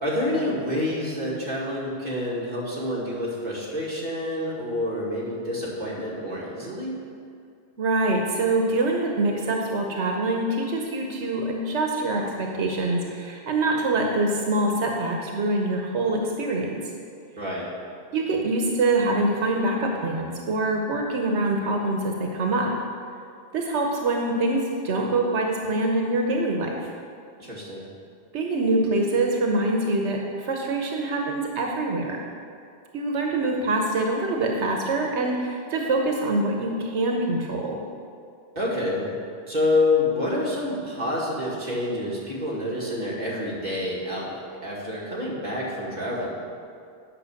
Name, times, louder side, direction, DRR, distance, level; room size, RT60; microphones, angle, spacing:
voice 1, 0.0-7.0 17.4-17.7 27.4-27.8 38.6-39.2 39.5-46.3, left 1 dB, 40° right, -6 dB, 2.3 m, -27 dB
voice 2, 7.8-16.8 18.1-22.7 23.5-26.9 28.3-32.2 32.9-37.8, right 2 dB, 90° right, 1 dB, 1.2 m, -25 dB
9.1 x 5.8 x 6.5 m, 2.3 s
omnidirectional pair, 1.1 m